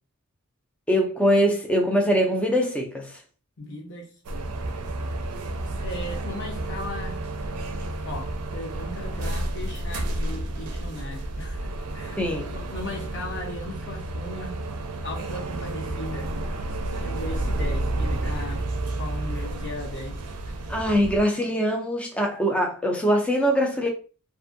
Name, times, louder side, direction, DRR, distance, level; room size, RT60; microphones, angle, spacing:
voice 1, 0.9-3.2 12.2-12.5 20.7-23.9, equal, 5° left, 0.4 m, -23 dB
voice 2, 3.6-4.1 5.8-7.2 8.0-12.2 12.5-14.6 15.0-16.3 16.9-18.6 19.0-20.2 20.5-20.6, left 1 dB, 55° left, 0.8 m, -37 dB
sound 1, 4.2-21.2, right 1 dB, 80° right, 0.4 m, -31 dB
2.6 x 2.5 x 2.5 m
head